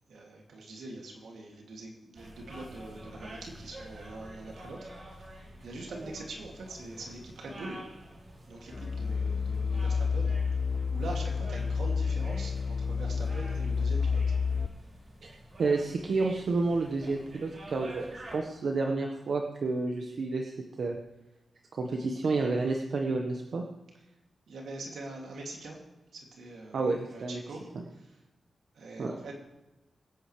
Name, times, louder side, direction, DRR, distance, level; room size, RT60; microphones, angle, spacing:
voice 1, 0.1-5.3 5.6-7.8 8.5-14.2 24.5-25.8 26.1-27.6 27.9-28.2 28.7-29.3, right 2 dB, 90° right, 0 dB, 2.6 m, -43 dB
sound 1, 2.1-18.4, right 1 dB, 55° right, 4.3 m, -48 dB
sound 2, 8.7-14.7, left 5 dB, 45° left, 0.3 m, -29 dB
voice 2, 15.2-21.0 21.7-23.6 26.7-27.4 29.0-29.1, right 3 dB, 70° right, 2 dB, 1.4 m, -30 dB
24.0 x 8.8 x 3.4 m, 0.99 s
cardioid pair, 60°, 0 cm